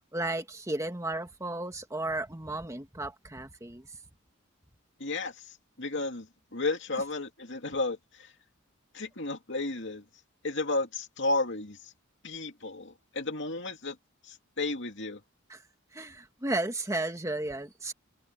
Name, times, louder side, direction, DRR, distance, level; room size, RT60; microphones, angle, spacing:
voice 1, 0.1-3.9 15.5-15.6 15.9-17.9, right 2 dB, 15° right, 1.7 m, -34 dB
voice 2, 5.0-5.3 5.8-6.3 6.5-8.3 8.9-10.0 10.4-11.8 12.2-14.0 14.3-15.2, left 2 dB, 60° left, 2.6 m, -32 dB
head